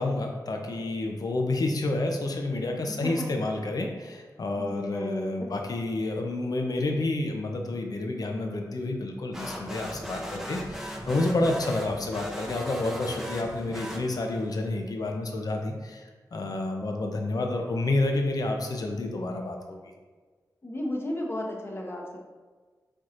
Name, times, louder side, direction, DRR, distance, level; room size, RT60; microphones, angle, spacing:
voice 1, 0.0-19.8, left 2 dB, 60° left, 2 dB, 0.7 m, -29 dB
voice 2, 2.9-3.3 4.6-5.6 20.6-22.2, left 1 dB, 35° left, -1 dB, 0.9 m, -34 dB
sound 1, 9.3-14.5, equal, 5° right, 0.8 m, -38 dB
4.6 x 4.3 x 2.5 m, 1.4 s
cardioid pair, 60°, 7 cm